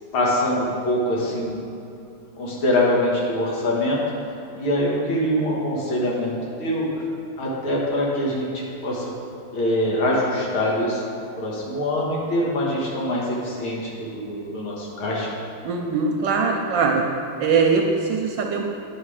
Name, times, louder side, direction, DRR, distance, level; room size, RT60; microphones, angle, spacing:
voice 1, 0.1-1.6 2.4-4.0 4.5-6.9 7.4-9.1 9.5-11.0 11.4-15.3, left 1 dB, 85° left, -4 dB, 2.4 m, -24 dB
voice 2, 15.6-17.0 17.4-18.6, right 5 dB, 70° right, 1 dB, 1.3 m, -21 dB
10.0 x 5.8 x 4.9 m, 2.7 s
omnidirectional pair, 2.2 m